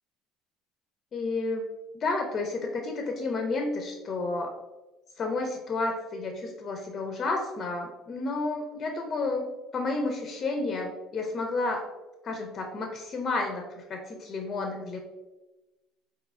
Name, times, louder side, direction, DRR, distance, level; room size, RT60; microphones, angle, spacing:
voice 1, 1.1-1.7 1.9-4.5 5.2-11.9 12.2-15.0, left 3 dB, 35° left, 3 dB, 0.4 m, -31 dB
4.0 x 2.7 x 2.3 m, 1.1 s
cardioid pair, 130°, 0 cm